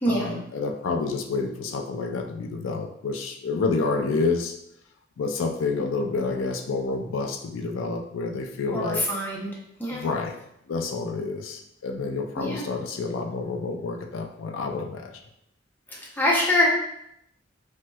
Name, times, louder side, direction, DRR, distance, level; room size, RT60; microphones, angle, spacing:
voice 1, 0.1-4.6 5.2-9.0 9.9-10.4 10.7-15.1, left 3 dB, 85° left, 4 dB, 0.4 m, -29 dB
voice 2, 8.7-9.5 9.8-10.1 12.4-12.6 15.9-16.7, left 1 dB, 10° left, -4 dB, 0.6 m, -24 dB
4.3 x 2.1 x 2.2 m, 0.78 s
head